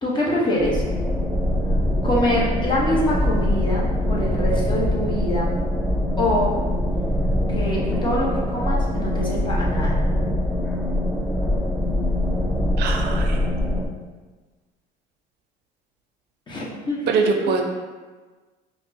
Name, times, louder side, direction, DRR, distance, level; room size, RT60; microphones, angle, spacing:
voice 1, 0.0-0.8 2.0-5.5 6.2-6.5 7.5-10.0 16.5-17.3, left 1 dB, 25° left, -5 dB, 1.0 m, -24 dB
sound 1, 0.6-13.9, left 1 dB, ahead, 0.4 m, -23 dB
voice 2, 12.8-13.4 17.1-17.6, right 5 dB, 65° right, 3 dB, 0.5 m, -22 dB
4.9 x 2.1 x 2.8 m, 1.3 s
supercardioid pair, 95°, 18 cm